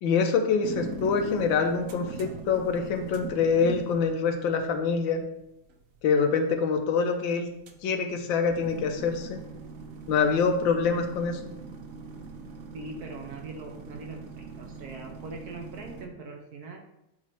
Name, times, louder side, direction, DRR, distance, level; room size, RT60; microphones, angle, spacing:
voice 1, 0.0-5.2 6.0-7.5 7.8-9.4 10.1-11.4, left 5 dB, 70° left, 4 dB, 1.5 m, -25 dB
sound 1, 0.6-16.1, right 3 dB, 90° right, 0.7 m, -42 dB
voice 2, 12.7-16.8, right 3 dB, 65° right, 2 dB, 1.0 m, -41 dB
8.2 x 3.2 x 4.4 m, 0.84 s
omnidirectional pair, 2.3 m